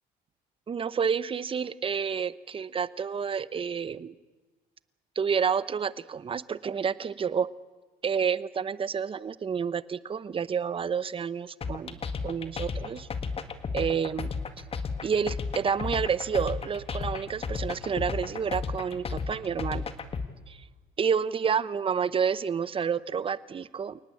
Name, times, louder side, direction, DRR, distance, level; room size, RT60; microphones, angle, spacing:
voice 1, 0.7-4.1 5.2-7.5 8.0-13.1 13.7-14.3 15.0-19.8 20.5-20.7 21.0-24.0, right 6 dB, 30° right, 18 dB, 0.8 m, -29 dB
sound 1, 11.6-20.3, left 5 dB, 35° left, 1.8 m, -33 dB
29.0 x 18.5 x 8.5 m, 1.3 s
cardioid pair, 110°, 17 cm